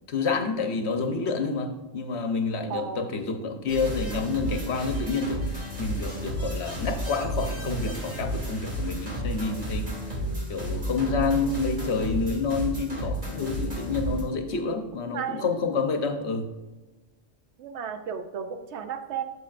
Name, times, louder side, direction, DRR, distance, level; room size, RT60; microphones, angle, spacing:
voice 1, 0.1-9.9 10.5-16.5, left 4 dB, 70° left, 5 dB, 1.1 m, -28 dB
voice 2, 2.7-3.0 10.1-10.9 15.1-15.5 17.6-19.2, right 7 dB, 75° right, 8 dB, 1.0 m, -34 dB
sound 1, 3.7-14.2, right 1 dB, 45° right, 2.9 m, -32 dB
8.6 x 6.9 x 2.5 m, 1.2 s
omnidirectional pair, 1.2 m